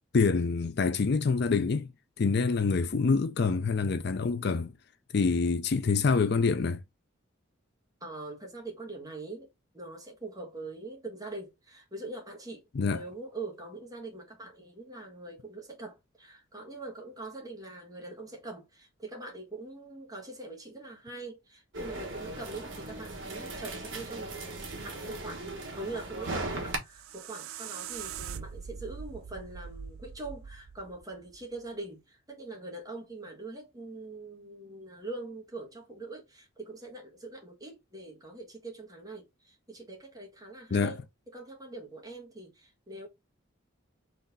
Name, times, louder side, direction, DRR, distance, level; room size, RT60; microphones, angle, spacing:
voice 1, 0.1-1.9 2.2-4.7 5.1-6.8 12.8-13.0 40.7-41.0, left 4 dB, 50° left, 0.4 m, -26 dB
voice 2, 8.0-9.5 9.7-43.1, right 2 dB, 15° right, 1.5 m, -43 dB
sound 1, 21.7-26.8, right 2 dB, 60° right, 1.5 m, -38 dB
sound 2, 26.7-31.7, right 7 dB, 90° right, 0.4 m, -43 dB
4.0 x 3.2 x 3.9 m
head